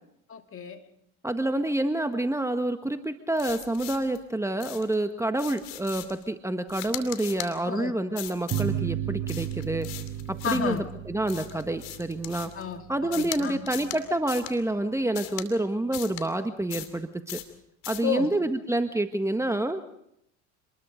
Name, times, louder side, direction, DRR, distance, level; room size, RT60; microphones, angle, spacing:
voice 1, 0.3-0.9 7.6-8.2 10.4-10.9 12.5-12.8 13.1-13.9 18.0-18.3, left 7 dB, 35° left, 6 dB, 2.5 m, -32 dB
voice 2, 1.2-9.9 10.3-12.5 12.9-17.4 17.9-19.8, right 1 dB, 10° right, 7 dB, 1.6 m, -28 dB
sound 1, 3.4-4.2 4.6-4.9 5.4-6.2 6.7-7.5 8.1-8.7 9.3-10.8 11.3-12.6 13.1-13.4 13.7-14.0 14.3-14.5 15.1-15.5 15.9-16.2 16.7-17.0 17.3-17.5 17.8-18.1, left 15 dB, 70° left, 2.7 m, -39 dB
sound 2, 8.5-13.6, right 11 dB, 40° right, 1.8 m, -34 dB
27.0 x 21.0 x 5.2 m, 0.75 s
hypercardioid pair, 80°, 36 cm